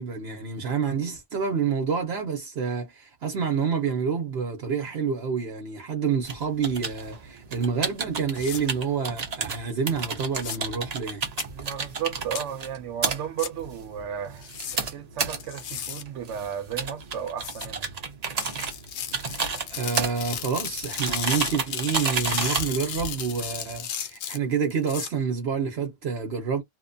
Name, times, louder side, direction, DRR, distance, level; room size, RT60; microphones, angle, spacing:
voice 1, 0.0-11.2 19.3-19.4 19.7-26.6, right 6 dB, 65° right, 0.9 m, -28 dB
sound 1, 6.2-23.8, right 5 dB, 45° right, 0.6 m, -32 dB
sound 2, 8.4-8.6 10.3-10.6 11.4-11.5 12.4-12.5 13.4-13.5 14.4-14.8 15.4-16.0 17.4-17.7 18.4-25.1, left 8 dB, 70° left, 0.8 m, -34 dB
voice 2, 11.5-17.9, right 9 dB, 90° right, 1.0 m, -34 dB
2.9 x 2.1 x 2.6 m
omnidirectional pair, 1.2 m